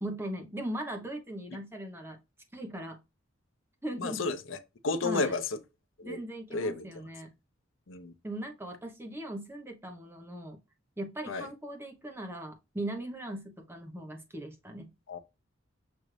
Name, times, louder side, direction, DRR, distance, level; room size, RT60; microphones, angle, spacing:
voice 1, 0.0-2.2 2.5-3.0 3.8-4.2 5.0-5.3 6.0-7.3 8.2-10.6 11.0-14.9, right 1 dB, 10° right, 1.0 m, -39 dB
voice 2, 4.0-5.6 6.0-6.2 6.5-7.0 7.9-8.1 11.3-11.5 15.1-15.2, left 3 dB, 70° left, 0.6 m, -32 dB
6.2 x 2.6 x 3.2 m
head